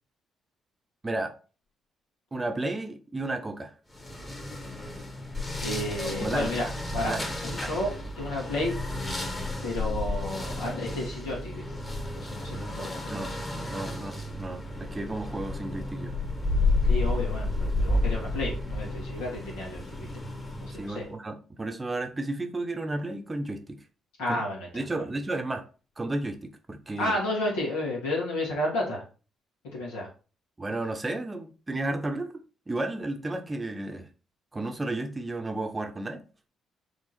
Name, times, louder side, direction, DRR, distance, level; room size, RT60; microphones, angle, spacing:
voice 1, 2.3-3.7 6.0-6.5 7.1-7.3 7.6-7.8 13.1-13.3 13.7-16.1 20.7-23.8 24.3-24.4 24.7-25.7 26.0-27.2 30.6-32.3 32.7-34.1 34.5-36.2, right 2 dB, 25° right, 1.0 m, -33 dB
sound 1, 3.9-21.1, left 2 dB, 25° left, 2.0 m, -31 dB
voice 2, 5.6-6.7 6.9-7.2 7.4-8.7 9.6-11.8 12.1-13.3 16.8-20.1 20.6-21.0 24.2-24.7 24.9-25.0 27.0-29.0 29.7-30.1, left 1 dB, 70° left, 2.4 m, -32 dB
6.2 x 3.6 x 4.2 m
figure-of-eight pair, 45°, 0 cm